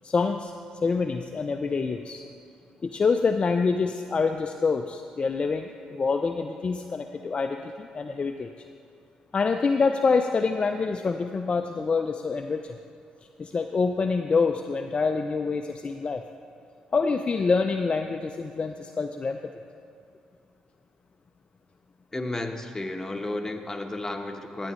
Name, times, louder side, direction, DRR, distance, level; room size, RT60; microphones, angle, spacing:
voice 1, 0.0-0.5 0.8-2.3 2.8-8.5 9.3-12.8 13.4-16.2 16.9-19.4, left 4 dB, 35° left, 5 dB, 0.4 m, -26 dB
voice 2, 22.1-24.7, left 2 dB, 15° left, 3 dB, 1.1 m, -32 dB
15.0 x 9.0 x 3.1 m, 2.5 s
supercardioid pair, 65°, 3 cm